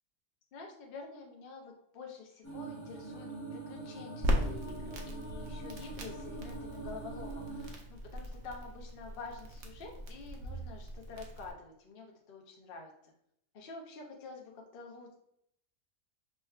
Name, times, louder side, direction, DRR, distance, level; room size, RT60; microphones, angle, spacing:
voice 1, 0.5-13.1 13.5-15.1, left 4 dB, 65° left, 0 dB, 0.5 m, -48 dB
sound 1, 2.4-7.7, right 2 dB, 15° left, 0.7 m, -44 dB
Crackle, 4.2-11.5, equal, 65° right, 0.9 m, -38 dB
5.3 x 2.2 x 2.2 m, 0.73 s
omnidirectional pair, 1.5 m